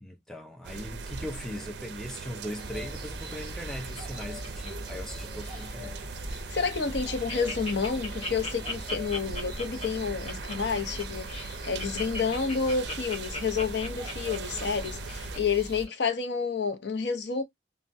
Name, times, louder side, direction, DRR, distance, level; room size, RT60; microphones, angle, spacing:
voice 1, 0.0-6.1, left 1 dB, ahead, 0.4 m, -39 dB
sound 1, 0.6-15.4, right 5 dB, 65° right, 0.4 m, -41 dB
sound 2, 2.6-15.9, equal, 25° right, 1.0 m, -41 dB
Laughter, 3.3-5.1 5.4-5.7 6.2-6.3 6.6-6.7 7.0-15.4 15.9-16.0, left 2 dB, 30° left, 1.0 m, -38 dB
voice 2, 6.3-17.4, left 5 dB, 65° left, 0.6 m, -30 dB
3.2 x 2.1 x 2.6 m
head